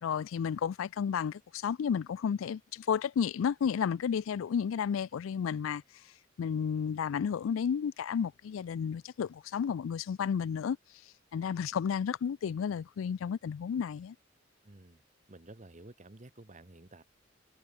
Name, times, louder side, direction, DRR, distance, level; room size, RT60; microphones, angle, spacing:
voice 1, 0.0-5.8 6.4-10.8 11.3-14.1, left 7 dB, 85° left, 0.3 m, -32 dB
voice 2, 14.6-15.0 15.3-17.0, right 2 dB, 40° right, 1.3 m, -52 dB
head